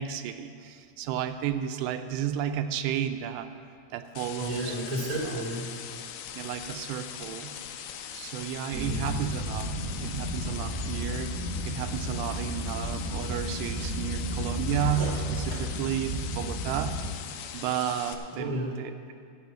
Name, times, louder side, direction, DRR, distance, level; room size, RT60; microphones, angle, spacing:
voice 1, 0.0-3.5 3.9-4.8 6.4-7.6 8.1-9.8 10.0-17.2 17.5-19.1, right 9 dB, 85° right, 9 dB, 2.7 m, -32 dB
sound 1, 4.2-18.2, left 9 dB, 80° left, 2.4 m, -41 dB
voice 2, 4.4-5.8 8.8-9.2 18.3-18.8, equal, 15° right, -3 dB, 1.3 m, -33 dB
sound 2, 8.7-17.1, equal, 65° right, 1.2 m, -33 dB
14.0 x 5.5 x 9.0 m, 2.3 s
omnidirectional pair, 4.9 m